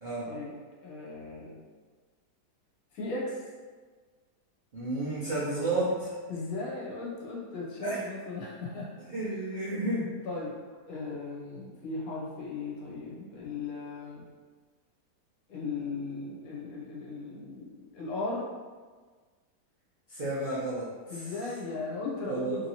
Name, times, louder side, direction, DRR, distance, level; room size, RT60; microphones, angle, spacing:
voice 1, 0.3-1.6 2.9-3.4 6.3-9.3 10.2-10.5 10.9-14.3 15.5-18.5 21.1-22.7, left 3 dB, 65° left, -5 dB, 1.0 m, -37 dB
voice 2, 4.7-6.1 7.8-8.0 9.1-10.1 20.1-20.9 22.3-22.6, right 2 dB, 85° right, -10 dB, 0.4 m, -31 dB
2.9 x 2.7 x 2.8 m, 1.5 s
omnidirectional pair, 1.8 m